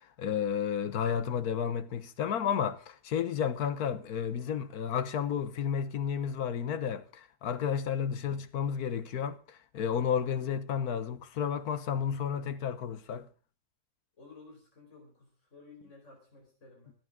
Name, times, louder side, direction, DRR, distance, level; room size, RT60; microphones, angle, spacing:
voice 1, 0.0-13.3, left 8 dB, 85° left, 1.5 m, -32 dB
voice 2, 10.2-10.5 14.2-16.9, left 3 dB, 50° left, 5.1 m, -54 dB
25.5 x 8.8 x 3.6 m
omnidirectional pair, 1.6 m